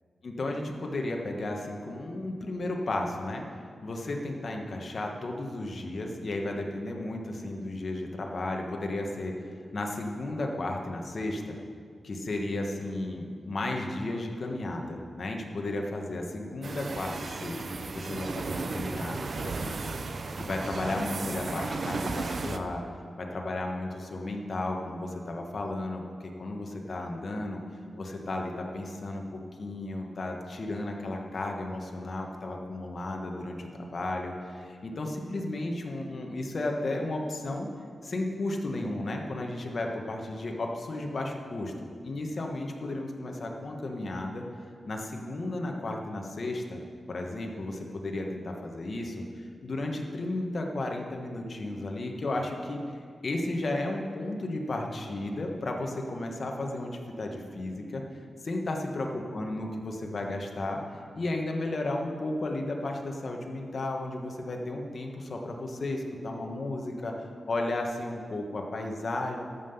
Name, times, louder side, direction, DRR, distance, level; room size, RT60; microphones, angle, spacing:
voice 1, 0.2-3.4 3.8-11.6 12.0-22.8 23.2-27.6 28.0-37.7 38.0-41.7 42.0-44.4 44.9-46.8 47.1-58.0 58.4-60.8 61.1-67.1 67.5-69.4, left 2 dB, 50° left, 2 dB, 1.4 m, -34 dB
sound 1, 16.6-22.6, right 3 dB, 55° right, 0.6 m, -34 dB
13.5 x 5.7 x 6.9 m, 2.1 s
wide cardioid pair, 120°, 0 cm